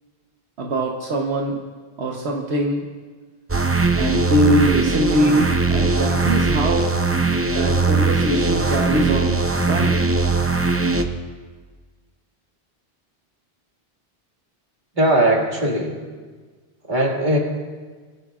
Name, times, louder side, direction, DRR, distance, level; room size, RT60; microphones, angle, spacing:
voice 1, 0.6-1.6 2.0-2.9 4.0-6.9 7.4-10.0, right 1 dB, 80° right, 0 dB, 1.3 m, -22 dB
sound 1, 3.5-11.0, right 3 dB, 15° right, 0.5 m, -20 dB
voice 2, 14.9-16.0 16.9-17.4, right 1 dB, 50° right, -2 dB, 2.2 m, -19 dB
22.5 x 13.0 x 2.4 m, 1.5 s
omnidirectional pair, 1.1 m